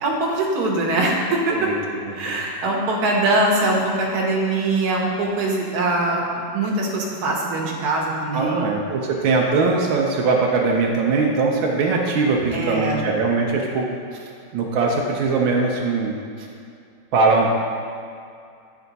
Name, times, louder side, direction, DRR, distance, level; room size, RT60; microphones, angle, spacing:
voice 1, 0.0-1.6 2.1-8.7 12.5-13.1, right 2 dB, 60° right, -2 dB, 1.4 m, -22 dB
voice 2, 2.0-2.3 8.3-13.9 14.5-16.5 17.1-17.5, right 4 dB, 85° right, -1 dB, 1.5 m, -21 dB
9.7 x 3.4 x 4.0 m, 2.4 s
omnidirectional pair, 2.1 m